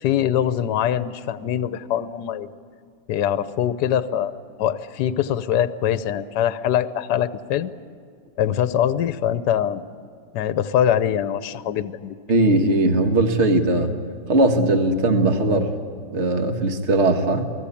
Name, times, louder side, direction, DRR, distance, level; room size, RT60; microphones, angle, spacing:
voice 1, 0.0-2.5 3.1-4.3 4.6-7.7 8.4-9.8 10.3-12.2, left 10 dB, 70° left, 12 dB, 1.3 m, -23 dB
voice 2, 12.3-13.9 14.3-15.7 16.1-17.5, right 2 dB, 40° right, 6 dB, 1.8 m, -19 dB
28.5 x 19.0 x 8.5 m, 2.2 s
omnidirectional pair, 2.0 m